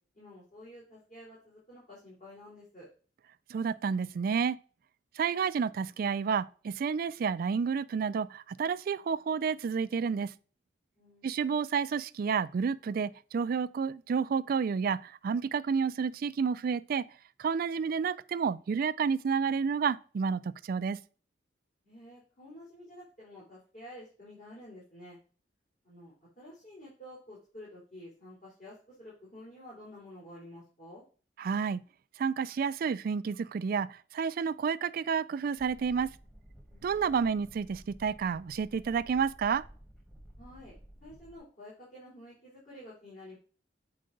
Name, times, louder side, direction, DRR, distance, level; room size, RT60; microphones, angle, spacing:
voice 1, 0.1-2.9 11.0-11.4 21.8-25.2 25.8-31.0 36.7-37.1 40.4-40.8 41.0-43.3, left 1 dB, 50° left, 3.6 m, -50 dB
voice 2, 3.5-4.6 5.2-10.3 11.2-17.1 17.4-21.0 31.4-31.8 32.2-36.1 36.8-39.6, right 6 dB, 55° right, 0.3 m, -30 dB
sound 1, 35.6-41.4, equal, 5° left, 1.3 m, -53 dB
7.7 x 4.6 x 3.9 m
head